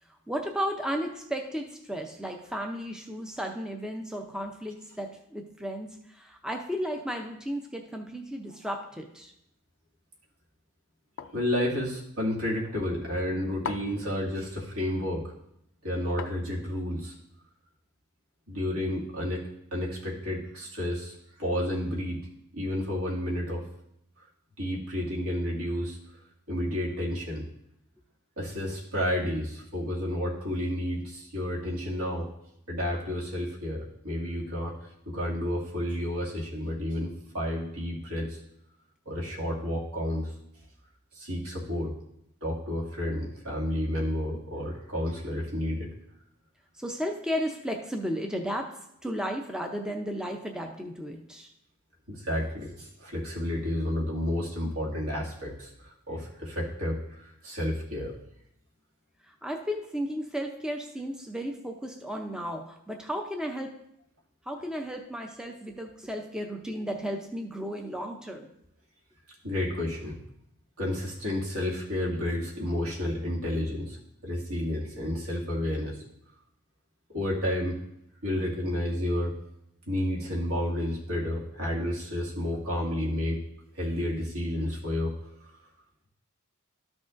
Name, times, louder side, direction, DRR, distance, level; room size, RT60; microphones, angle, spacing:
voice 1, 0.3-9.3 46.7-51.5 59.3-63.7 64.5-68.5, equal, 5° right, 3 dB, 0.5 m, -34 dB
sound 1, 11.2-11.5 13.6-14.1 16.2-16.8, left 6 dB, 60° left, 0.4 m, -38 dB
voice 2, 11.3-15.3 15.8-17.1 18.5-22.2 22.5-23.6 24.6-26.0 26.5-27.4 28.4-32.3 32.7-34.7 35.1-38.4 39.1-40.3 41.1-41.9 42.4-45.9 52.1-58.1 69.4-70.2 70.8-74.0 74.2-76.0 77.1-77.8 78.2-79.4 79.9-83.4 83.7-85.1 85.4-85.5, left 1 dB, 70° right, -4 dB, 2.2 m, -31 dB
13.0 x 6.1 x 2.5 m, 0.78 s
head